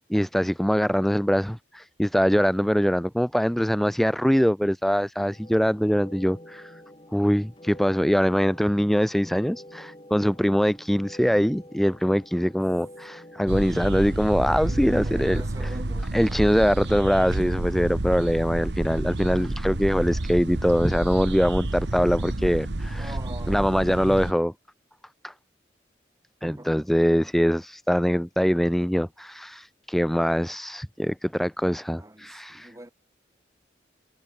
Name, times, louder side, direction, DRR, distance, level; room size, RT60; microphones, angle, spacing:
voice 1, 0.1-6.8 7.1-15.7 16.1-23.2 23.5-24.5 25.2-25.3 26.4-32.7, equal, ahead, 0.3 m, -23 dB
sound 1, 5.2-15.5, left 1 dB, 30° left, 4.5 m, -47 dB
sound 2, 13.5-24.3, right 1 dB, 75° right, 1.3 m, -29 dB
voice 2, 15.0-16.1 22.9-23.8 26.4-26.9 32.0-32.9, right 1 dB, 15° right, 1.3 m, -43 dB
head